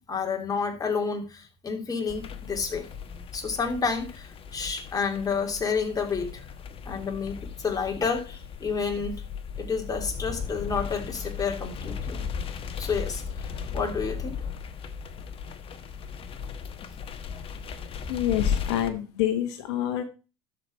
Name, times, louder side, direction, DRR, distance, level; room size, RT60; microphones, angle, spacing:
voice 1, 0.1-2.9 3.3-6.4 6.8-9.2 9.6-12.2 12.8-13.2 13.7-14.4 17.3-17.4, left 5 dB, 25° left, 2.9 m, -30 dB
sound 1, 2.1-18.9, left 6 dB, 40° left, 1.3 m, -36 dB
voice 2, 18.1-20.0, left 11 dB, 75° left, 1.2 m, -27 dB
12.5 x 5.1 x 4.4 m
hypercardioid pair, 85°, 14 cm